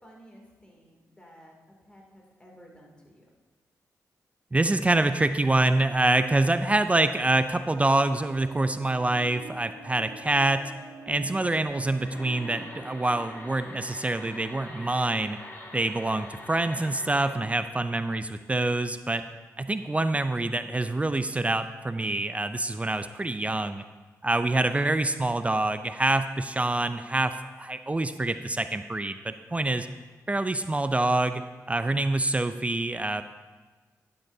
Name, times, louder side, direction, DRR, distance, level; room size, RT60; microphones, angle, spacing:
voice 1, 0.0-1.5 1.8-3.2, equal, 15° left, -1 dB, 2.5 m, -53 dB
voice 2, 4.5-10.7 11.1-15.4 15.7-19.2 19.6-23.8 24.2-29.9 30.3-33.2, right 2 dB, 20° right, 10 dB, 0.4 m, -26 dB
sound 1, 7.9-16.0, right 4 dB, 75° right, 0.8 m, -48 dB
sound 2, 12.0-17.3, left 1 dB, 35° left, 2.4 m, -44 dB
11.5 x 9.4 x 2.7 m, 1.3 s
cardioid pair, 60°, 6 cm